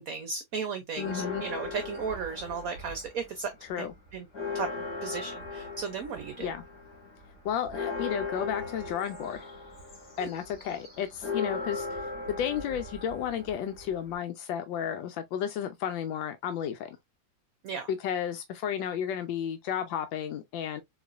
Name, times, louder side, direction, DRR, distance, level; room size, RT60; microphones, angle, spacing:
voice 1, 0.0-3.5 3.8-3.9 4.1-4.2 4.5-6.5 10.2-10.3 17.6-17.9, right 5 dB, 65° right, 0.9 m, -35 dB
Church bell, 0.9-3.3 3.7-3.8 4.1-14.2, left 4 dB, 60° left, 2.2 m, -38 dB
voice 2, 1.0-1.4 3.6-3.9 6.4-6.6 7.4-9.5 10.2-16.9 17.9-20.8, left 9 dB, 85° left, 1.3 m, -33 dB
4.0 x 3.0 x 2.4 m
omnidirectional pair, 2.0 m